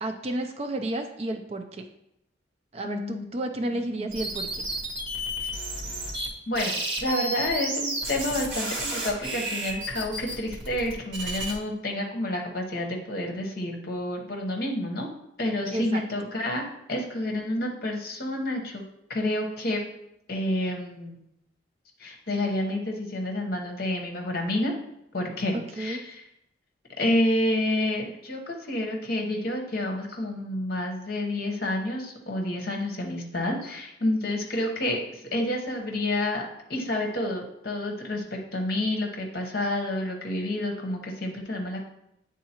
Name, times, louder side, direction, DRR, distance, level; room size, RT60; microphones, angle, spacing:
voice 1, 0.0-1.9 2.7-4.7 15.7-16.0 25.5-26.0, right 1 dB, 30° right, 6 dB, 0.4 m, -32 dB
voice 2, 2.8-3.3 3.7-4.1 6.5-15.1 15.4-16.6 16.9-18.8 19.1-19.8 20.3-21.2 22.0-24.7 25.1-26.2 27.0-41.8, left 1 dB, 50° left, 1 dB, 1.0 m, -29 dB
sound 1, 4.1-6.3 6.5-11.5, right 1 dB, 70° right, 1.6 m, -32 dB
9.2 x 3.7 x 2.9 m, 0.81 s
head